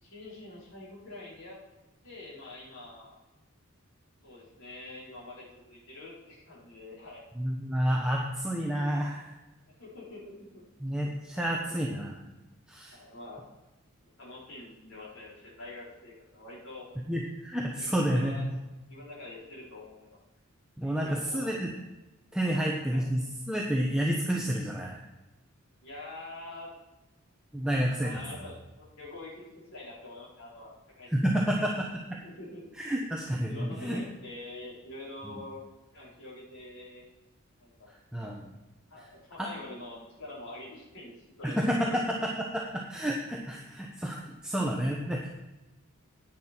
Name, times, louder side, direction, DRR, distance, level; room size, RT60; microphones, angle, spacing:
voice 1, 0.0-1.6 2.0-3.2 4.2-7.2 9.6-10.6 11.3-12.1 12.9-13.5 14.0-16.9 17.8-18.6 18.9-20.2 20.8-21.5 22.3-22.7 22.9-23.0 25.8-26.7 28.0-29.4 29.7-30.7 31.0-31.5 32.2-32.6 33.5-35.6 35.9-37.0 37.6-37.9 38.9-41.1 41.4-42.2, left 2 dB, 70° left, -7 dB, 4.3 m, -46 dB
voice 2, 7.4-9.3 10.8-12.2 12.7-12.9 17.1-18.5 20.8-21.7 22.3-25.0 27.5-28.1 31.1-31.9 32.8-34.0 35.2-35.4 38.1-38.5 39.4-39.5 41.4-45.3, equal, 5° right, -2 dB, 0.8 m, -30 dB
10.0 x 9.2 x 4.4 m, 1.0 s
head